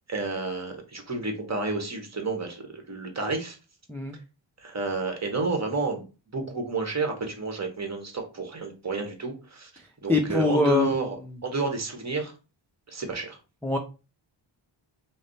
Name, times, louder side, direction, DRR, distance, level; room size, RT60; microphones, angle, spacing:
voice 1, 0.1-3.6 4.6-6.0 6.3-9.7 10.0-11.2 11.4-12.3 12.9-13.4, right 3 dB, 35° right, 4 dB, 1.1 m, -30 dB
voice 2, 10.1-10.9 13.6-13.8, left 2 dB, 5° left, 2 dB, 0.4 m, -23 dB
5.1 x 2.1 x 3.9 m, 0.31 s
wide cardioid pair, 140°, 47 cm